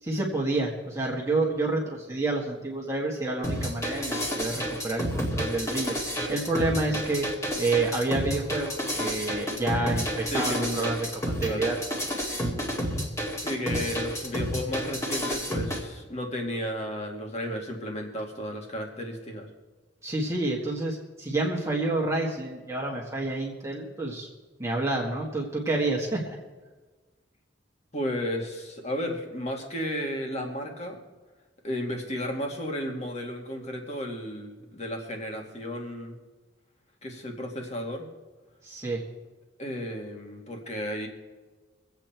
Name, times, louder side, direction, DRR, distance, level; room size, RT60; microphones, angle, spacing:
voice 1, 0.0-7.3 7.6-11.7 20.0-24.3 24.6-26.4 38.6-39.0, right 2 dB, 15° right, -3 dB, 1.7 m, -29 dB
sound 1, 3.4-15.8, equal, 15° left, 2.1 m, -30 dB
voice 2, 10.3-11.0 11.4-11.7 13.4-19.5 27.9-31.0 31.6-36.2 37.0-38.1 39.6-41.1, equal, 35° left, 2 dB, 2.3 m, -33 dB
23.0 x 8.3 x 4.5 m, 1.3 s
head